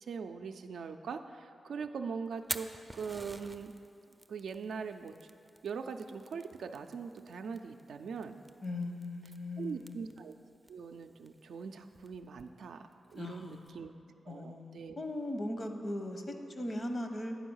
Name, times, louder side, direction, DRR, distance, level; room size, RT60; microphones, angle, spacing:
voice 1, 0.0-3.7 4.3-5.1 5.6-8.4 9.6-10.3 10.7-13.9 14.3-15.0, right 5 dB, 85° right, 7 dB, 0.4 m, -41 dB
Fire, 2.3-13.7, right 1 dB, 20° right, 0.4 m, -50 dB
voice 2, 8.6-10.1 13.1-17.4, left 1 dB, 50° left, 5 dB, 0.8 m, -39 dB
9.2 x 4.6 x 6.3 m, 2.5 s
cardioid pair, 60°, 0 cm